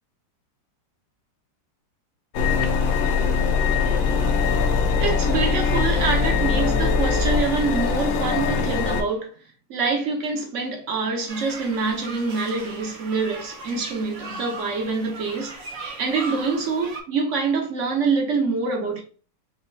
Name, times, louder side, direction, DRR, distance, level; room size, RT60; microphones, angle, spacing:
sound 1, 2.3-9.0, left 5 dB, 80° left, 1.3 m, -21 dB
voice 1, 5.0-9.3 9.7-15.5 16.0-19.0, right 4 dB, 50° right, 1.0 m, -25 dB
sound 2, 11.3-17.0, right 3 dB, 75° right, 1.9 m, -38 dB
5.2 x 2.7 x 2.7 m
omnidirectional pair, 2.0 m